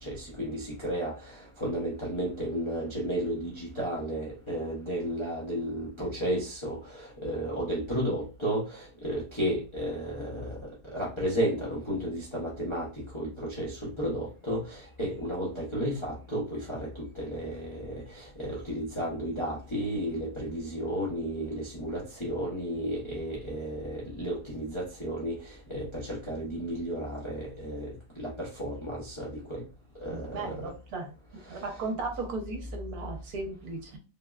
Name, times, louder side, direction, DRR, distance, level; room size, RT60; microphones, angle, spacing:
voice 1, 0.0-29.6 30.0-30.7 31.5-31.6, equal, 45° left, -6 dB, 0.3 m, -33 dB
voice 2, 30.1-31.1 31.5-34.0, right 3 dB, 70° right, 1 dB, 1.1 m, -36 dB
3.4 x 2.1 x 2.2 m, 0.33 s
omnidirectional pair, 1.8 m